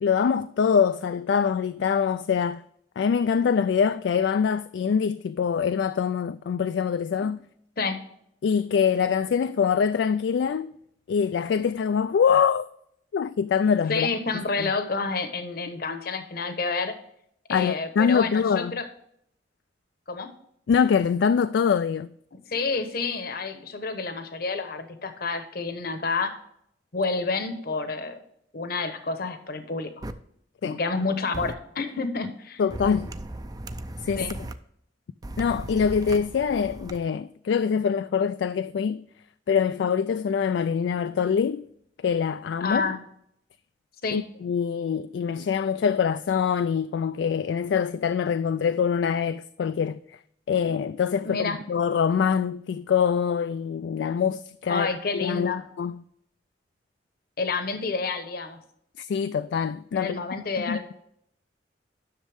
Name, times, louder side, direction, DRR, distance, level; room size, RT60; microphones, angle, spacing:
voice 1, 0.0-2.6 3.0-7.4 8.4-10.7 11.1-12.7 13.1-14.1 14.6-14.7 17.5-18.7 20.7-22.1 30.6-30.8 32.6-33.1 34.0-34.3 35.4-39.0 39.5-41.6 42.0-42.9 44.1-50.2 50.5-56.0 59.0-60.2 60.7-60.9, left 6 dB, 75° left, 0.3 m, -24 dB
voice 2, 13.7-16.9 17.5-18.8 20.1-20.3 22.3-26.3 26.9-28.2 28.5-29.9 30.6-32.6 34.2-34.3 42.6-43.0 44.0-44.2 51.2-51.6 54.7-55.6 57.4-58.6 59.9-60.9, left 4 dB, 55° left, 1.0 m, -29 dB
sound 1, 30.0-30.1 31.3-31.5 32.7-34.5 35.2-37.0, right 1 dB, 20° right, 0.5 m, -36 dB
10.5 x 6.5 x 3.5 m
head